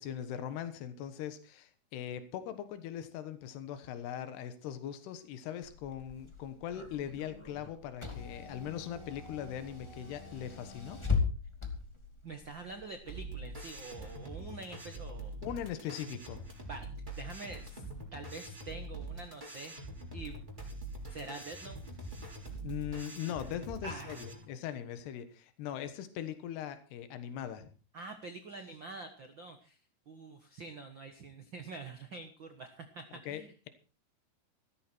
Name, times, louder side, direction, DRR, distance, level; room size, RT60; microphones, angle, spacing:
voice 1, 0.0-11.0 15.4-16.4 22.6-27.7 33.3-33.7, left 10 dB, 85° left, 10 dB, 3.4 m, -40 dB
Car / Engine, 5.6-13.9, left 5 dB, 10° left, 1.5 m, -39 dB
voice 2, 12.2-15.3 16.7-17.8 18.1-19.7 20.1-20.4 21.1-21.8 23.8-24.3 27.9-29.8 30.1-33.5, right 3 dB, 70° right, 7 dB, 1.1 m, -46 dB
sound 1, 13.1-24.3, right 2 dB, 10° right, 3.8 m, -44 dB
15.5 x 14.0 x 4.5 m, 0.35 s
omnidirectional pair, 4.6 m